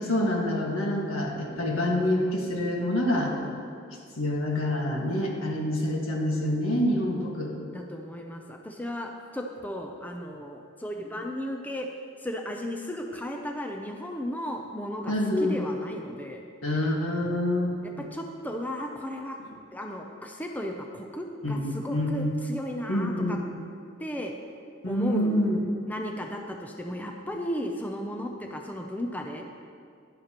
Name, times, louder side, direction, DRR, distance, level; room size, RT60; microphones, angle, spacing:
voice 1, 0.0-3.3 4.2-7.5 15.1-15.6 16.6-18.1 21.4-21.6 21.9-22.3 22.9-23.4 24.8-25.6, left 1 dB, 80° left, -1 dB, 1.7 m, -27 dB
voice 2, 3.3-3.6 6.8-7.3 7.7-11.9 12.2-16.4 17.8-19.4 19.7-23.4 24.0-24.3 24.9-25.5 25.9-29.5, equal, 10° left, 2 dB, 0.5 m, -35 dB
11.5 x 10.5 x 3.0 m, 2.3 s
head